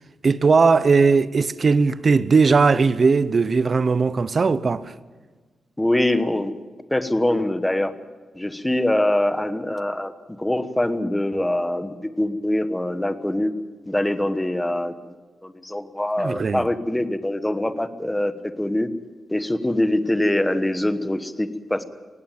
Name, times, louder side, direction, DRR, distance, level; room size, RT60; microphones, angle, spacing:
voice 1, 0.2-4.9 16.2-16.6, right 4 dB, 35° right, 0.7 m, -18 dB
voice 2, 5.8-6.5 6.9-7.9 8.3-10.1 10.4-13.5 13.9-14.9 15.4-18.3 18.6-18.9 19.3-21.8, left 1 dB, 10° left, 1.1 m, -23 dB
18.0 x 17.0 x 9.0 m
wide cardioid pair, 140°, 0 cm